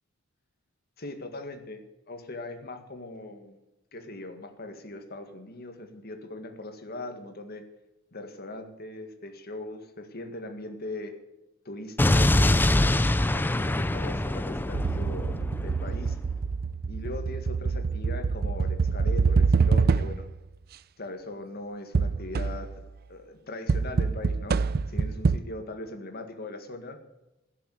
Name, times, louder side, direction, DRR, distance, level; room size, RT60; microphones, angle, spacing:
voice 1, 1.0-1.8 2.1-3.6 3.9-7.6 8.1-11.1 11.7-16.2 16.9-20.3 21.0-22.7 23.1-24.6 24.9-27.0, left 2 dB, 50° left, 6 dB, 1.8 m, -40 dB
Explosion, 12.0-16.0, left 1 dB, 10° left, 0.4 m, -24 dB
sound 1, 14.7-20.4 21.9-22.8 23.7-25.4, right 4 dB, 50° right, 0.4 m, -26 dB
16.5 x 6.9 x 7.8 m, 0.95 s
head